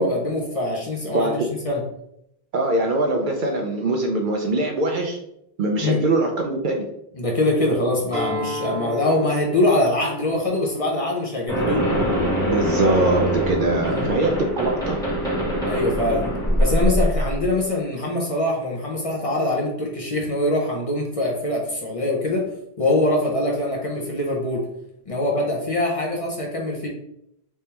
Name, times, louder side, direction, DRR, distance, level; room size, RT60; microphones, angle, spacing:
voice 1, 0.0-1.8 5.8-6.0 7.1-11.9 13.8-14.1 15.6-16.3 16.6-22.5 22.8-24.7 25.1-26.9, left 1 dB, 40° left, -2 dB, 0.7 m, -23 dB
voice 2, 2.5-5.2 5.6-6.9 12.2-15.0, right 2 dB, 60° right, 2 dB, 0.6 m, -22 dB
Acoustic guitar, 8.1-13.3, left 1 dB, 15° right, 0.9 m, -35 dB
sound 1, 11.5-17.5, equal, 5° left, 1.3 m, -23 dB
3.4 x 3.2 x 2.9 m, 0.78 s
omnidirectional pair, 1.1 m